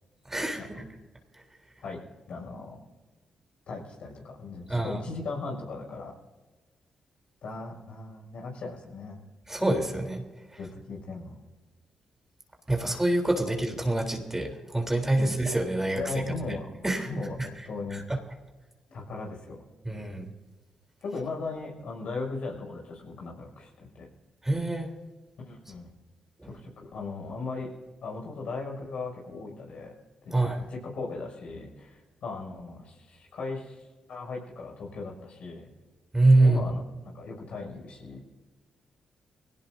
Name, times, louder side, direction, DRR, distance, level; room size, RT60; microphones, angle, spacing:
voice 1, 0.3-0.8 4.7-5.0 9.5-10.2 12.7-16.1 16.8-17.5 17.9-18.0 19.8-20.3 24.4-24.9 30.3-30.7 36.1-36.6, right 2 dB, 15° right, 3 dB, 3.6 m, -25 dB
voice 2, 2.3-2.8 3.7-6.1 7.4-9.2 10.6-11.4 15.2-15.3 15.9-16.6 16.9-18.0 18.9-19.6 21.0-23.7 23.9-24.1 25.4-25.9 26.4-27.7 28.0-29.9 30.2-30.3 30.7-35.7 36.4-38.2, left 3 dB, 65° left, -2 dB, 6.3 m, -38 dB
24.0 x 17.5 x 2.7 m, 1.3 s
hypercardioid pair, 40°, 2 cm